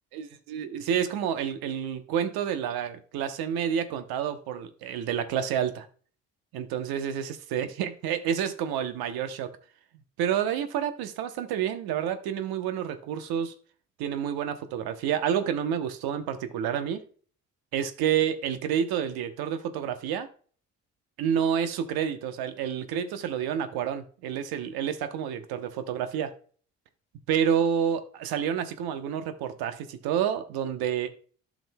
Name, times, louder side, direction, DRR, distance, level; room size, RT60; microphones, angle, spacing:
voice 1, 0.1-5.9 6.5-9.5 10.2-13.5 14.0-17.0 17.7-20.3 21.2-26.3 27.3-31.1, right 8 dB, 75° right, 0.9 m, -29 dB
12.0 x 5.1 x 2.2 m
hypercardioid pair, 50°, 37 cm